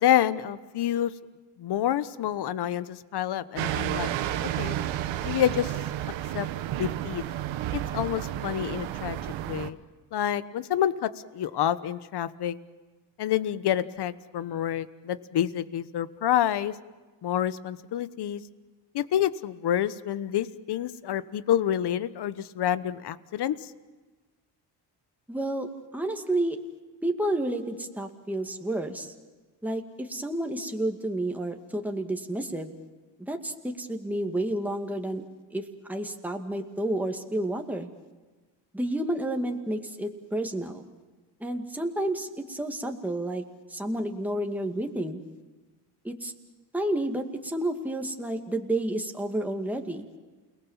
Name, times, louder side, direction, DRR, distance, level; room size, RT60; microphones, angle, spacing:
voice 1, 0.0-1.1 1.6-4.1 4.6-4.8 5.2-5.7 6.3-6.5 6.8-7.2 7.7-9.2 9.5-9.8 10.1-12.6 13.2-16.7 17.2-18.4 18.9-23.7, left 11 dB, 60° left, 15 dB, 1.2 m, -28 dB
sound 1, 3.6-9.7, right 12 dB, 85° right, 1.2 m, -31 dB
voice 2, 25.3-25.7 25.9-26.6 27.0-29.1 29.6-32.7 33.3-35.2 35.5-35.6 35.9-37.9 38.7-40.8 41.4-43.4 43.7-45.2 46.0-46.3 46.7-50.1, right 1 dB, 5° right, 3 dB, 2.2 m, -30 dB
29.0 x 19.0 x 7.3 m, 1.3 s
cardioid pair, 90°, 44 cm